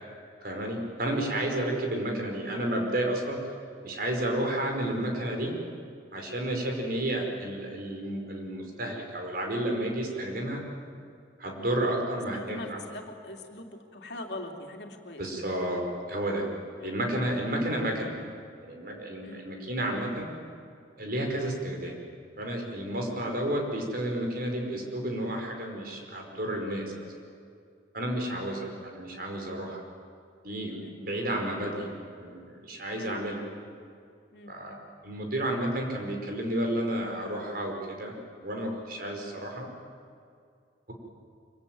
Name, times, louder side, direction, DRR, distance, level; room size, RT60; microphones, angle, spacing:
voice 1, 0.4-3.4 3.8-5.5 6.1-10.6 11.4-12.8 15.2-16.4 16.8-18.1 18.6-20.3 21.0-22.0 22.4-27.1 27.9-29.8 30.4-31.9 32.2-33.4 34.5-34.8 35.0-38.2 38.4-39.7, right 1 dB, 55° right, 2 dB, 5.1 m, -31 dB
voice 2, 12.3-15.2 16.7-16.9 19.2-19.5 30.8-31.0 33.0-33.4 34.3-34.6, left 1 dB, 65° left, 2 dB, 3.0 m, -42 dB
25.5 x 24.5 x 9.5 m, 2.4 s
head